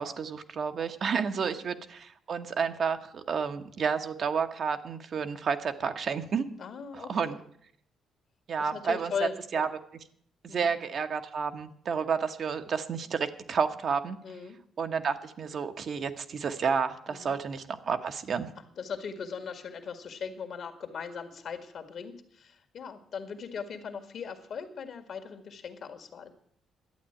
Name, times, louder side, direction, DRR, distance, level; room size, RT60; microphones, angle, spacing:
voice 1, 0.0-6.4 6.9-7.4 8.5-9.1 9.5-9.7 10.4-14.2 14.8-18.5, right 6 dB, 55° right, 7 dB, 1.1 m, -30 dB
voice 2, 6.6-7.4 8.6-9.7 10.5-10.7 12.0-12.1 14.2-14.6 17.1-17.4 18.8-26.3, left 6 dB, 60° left, 7 dB, 1.9 m, -39 dB
11.5 x 8.6 x 8.9 m, 0.66 s
cardioid pair, 90°, 0 cm